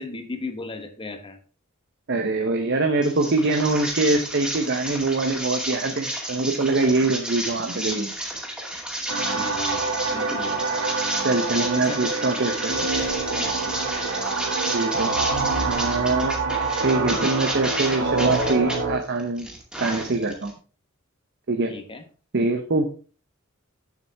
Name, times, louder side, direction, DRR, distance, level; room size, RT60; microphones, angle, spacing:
voice 1, 0.0-1.4 9.3-10.7 11.7-12.1 13.3-13.8 14.3-14.4 21.7-22.0, left 3 dB, 25° left, 7 dB, 1.1 m, -36 dB
voice 2, 2.1-8.1 11.2-12.7 14.7-15.1 15.6-16.4 16.8-19.5 19.8-20.5 21.5-21.7 22.3-22.9, right 3 dB, 55° right, 5 dB, 0.9 m, -23 dB
sound 1, 3.0-18.8 19.2-20.5, right 1 dB, 5° right, 2.3 m, -31 dB
sound 2, 9.1-18.9, right 3 dB, 85° right, 2.2 m, -26 dB
8.3 x 7.7 x 3.5 m, 0.37 s
head